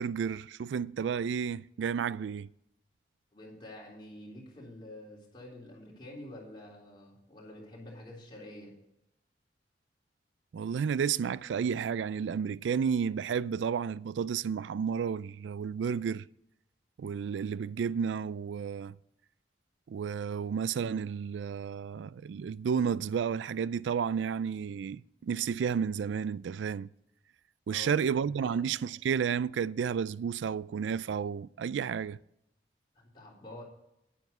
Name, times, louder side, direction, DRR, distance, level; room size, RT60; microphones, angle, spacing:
voice 1, 0.0-2.5 10.5-16.2 17.0-18.9 19.9-26.9 27.7-32.2, right 7 dB, 90° right, 0.3 m, -32 dB
voice 2, 3.3-8.7 27.7-28.7 33.0-33.6, left 1 dB, 25° left, 3.7 m, -48 dB
10.0 x 9.2 x 5.4 m
head